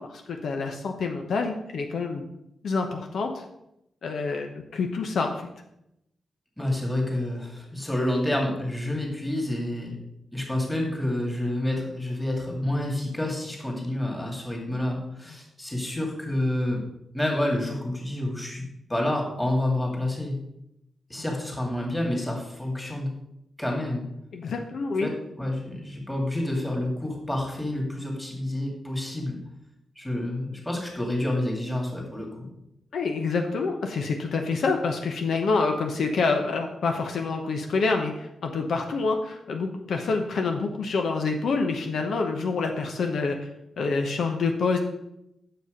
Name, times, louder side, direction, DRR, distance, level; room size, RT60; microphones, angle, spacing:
voice 1, 0.0-2.2 2.6-3.4 4.0-5.5 24.3-25.1 32.9-43.4 43.8-44.8, left 4 dB, 65° left, 3 dB, 1.0 m, -27 dB
voice 2, 6.6-10.0 10.3-16.8 17.1-20.4 21.1-23.1 23.6-24.0 25.0-25.1 25.4-29.4 30.0-32.5, left 1 dB, 5° left, 0 dB, 2.2 m, -28 dB
9.2 x 7.0 x 5.1 m, 0.82 s
wide cardioid pair, 175°, 0 cm